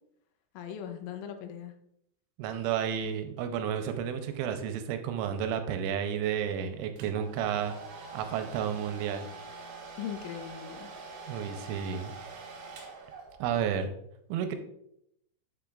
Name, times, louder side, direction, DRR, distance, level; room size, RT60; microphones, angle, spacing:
voice 1, 0.5-1.7 10.0-10.9, left 9 dB, 90° left, 6 dB, 3.3 m, -39 dB
voice 2, 2.4-9.3 11.3-12.1 13.4-13.9 14.3-14.6, right 8 dB, 85° right, 7 dB, 3.1 m, -32 dB
Domestic sounds home sounds, 7.0-13.6, right 4 dB, 70° right, 2.5 m, -45 dB
7.5 x 6.9 x 2.4 m, 0.75 s
omnidirectional pair, 5.5 m